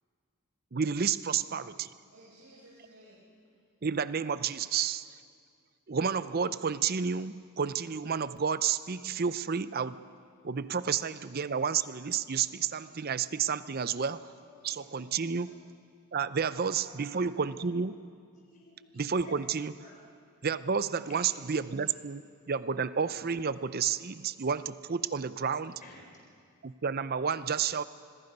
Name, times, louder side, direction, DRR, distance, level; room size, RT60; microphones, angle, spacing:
voice 1, 0.7-1.9 3.8-5.0 5.9-10.0 10.4-14.3 14.6-15.5 16.1-17.9 19.0-19.7 20.4-22.2 22.5-25.7 26.6-27.8, right 6 dB, 45° right, 15 dB, 0.6 m, -31 dB
voice 2, 2.1-3.3 9.9-10.0 14.6-14.9 16.3-17.2 20.8-21.1, right 1 dB, 90° right, -7 dB, 6.0 m, -55 dB
voice 3, 12.4-13.1 13.7-14.0 14.3-15.1 15.4-15.6 17.2-17.9 18.3-19.6 19.8-20.0 21.0-21.6 22.7-23.1 25.7-26.2, left 2 dB, 35° left, -3 dB, 4.4 m, -56 dB
26.5 x 22.0 x 5.4 m, 2.3 s
head